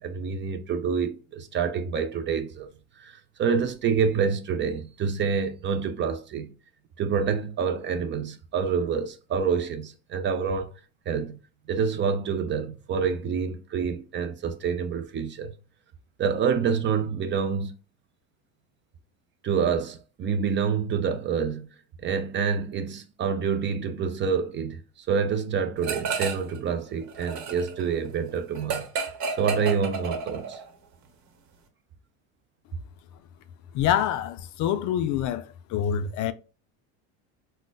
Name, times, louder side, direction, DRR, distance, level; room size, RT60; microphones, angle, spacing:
voice 1, 0.0-2.7 3.0-6.5 7.0-10.7 11.1-11.4 11.7-15.5 16.2-17.7 19.4-21.7 22.0-28.9 29.3-30.6, right 6 dB, 30° right, 0.4 m, -27 dB
sound 1, 25.8-26.6 26.9-30.7, right 5 dB, 50° right, 1.0 m, -32 dB
voice 2, 33.7-36.3, left 10 dB, 50° left, 0.5 m, -26 dB
5.1 x 2.1 x 2.2 m
supercardioid pair, 115°, 38 cm